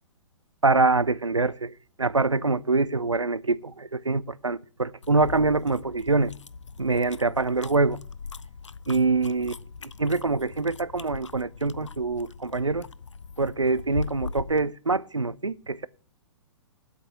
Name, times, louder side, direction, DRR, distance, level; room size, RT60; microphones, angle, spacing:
voice 1, 0.6-6.3 6.8-8.0 8.9-9.5 10.0-12.9 13.4-15.9, right 3 dB, 90° right, 0.5 m, -25 dB
sound 1, 5.0-14.7, left 5 dB, 80° left, 0.4 m, -40 dB
8.0 x 5.8 x 7.6 m
figure-of-eight pair, 115°, 15 cm